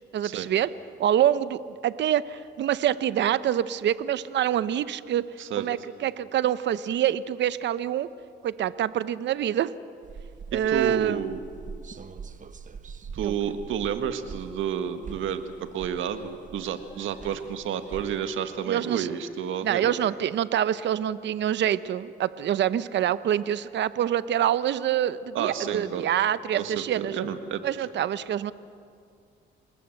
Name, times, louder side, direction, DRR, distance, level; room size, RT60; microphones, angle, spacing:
voice 1, 0.1-0.7 1.0-5.3 5.6-8.1 8.4-9.7 10.5-11.2 13.2-13.3 18.7-19.1 19.6-27.2 27.6-28.5, right 10 dB, 65° right, 15 dB, 0.8 m, -26 dB
sound 1, 10.0-18.3, right 5 dB, 40° right, 1.1 m, -43 dB
voice 2, 10.5-11.4 13.1-20.0 25.3-26.0 26.6-27.7, right 8 dB, 80° right, 8 dB, 1.8 m, -30 dB
sound 2, 16.1-17.4 17.8-19.2 19.7-20.2 20.5-20.6 21.7-21.8 22.7-24.1, right 2 dB, 15° right, 5.6 m, -57 dB
28.0 x 20.0 x 7.9 m, 2.3 s
cardioid pair, 90°, 20 cm